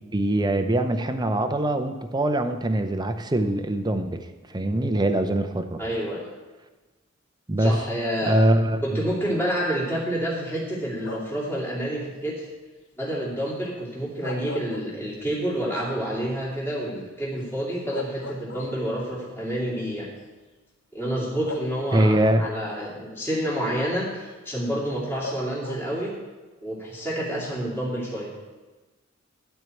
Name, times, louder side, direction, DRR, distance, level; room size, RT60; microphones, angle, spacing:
voice 1, 0.1-5.8 7.5-7.8 8.3-9.1 21.9-22.5, right 1 dB, 20° right, 7 dB, 0.6 m, -23 dB
voice 2, 5.8-6.2 7.6-8.4 8.8-12.5 13.0-20.1 20.9-26.1 26.6-28.3, right 1 dB, 10° left, -6 dB, 2.6 m, -28 dB
sound 1, 11.0-11.5 14.0-15.4 15.8-15.9 17.4-17.5 17.9-19.1 20.1-20.2 21.5-22.2 25.2-26.1, left 3 dB, 60° left, 0.7 m, -38 dB
12.0 x 4.6 x 7.7 m, 1.2 s
head